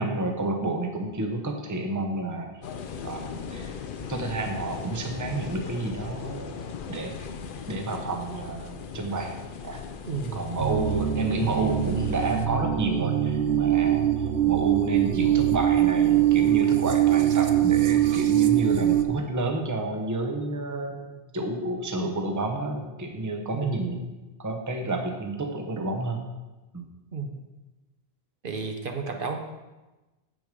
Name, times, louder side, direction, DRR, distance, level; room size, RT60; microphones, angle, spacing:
voice 1, 0.0-2.5 3.0-3.7 4.1-6.6 6.9-9.4 9.6-9.8 10.3-24.0 24.4-26.2 26.7-26.8, right 2 dB, 20° right, 3 dB, 0.8 m, -30 dB
sound 1, 2.6-12.5, left 6 dB, 60° left, 0.7 m, -38 dB
voice 2, 10.0-10.6 23.5-24.1 27.1-27.4 28.4-29.4, right 5 dB, 60° right, 4 dB, 1.0 m, -32 dB
sound 2, 10.6-19.1, right 11 dB, 80° right, 0.9 m, -22 dB
8.1 x 6.2 x 5.2 m, 1.1 s
omnidirectional pair, 1.1 m